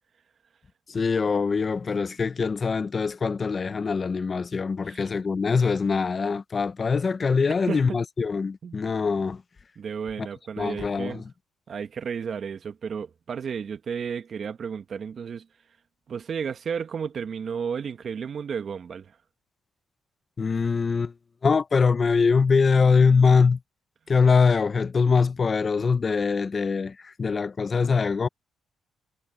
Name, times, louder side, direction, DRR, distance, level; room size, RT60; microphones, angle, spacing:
voice 1, 0.9-9.4 10.2-10.3 10.6-11.2 20.4-21.1 21.4-23.6 24.1-28.3, left 5 dB, 35° left, 1.0 m, -23 dB
voice 2, 7.7-8.0 8.6-8.8 9.8-11.2 11.7-15.5 16.1-19.1, right 6 dB, 50° right, 1.5 m, -33 dB
cardioid pair, 90°, 0 cm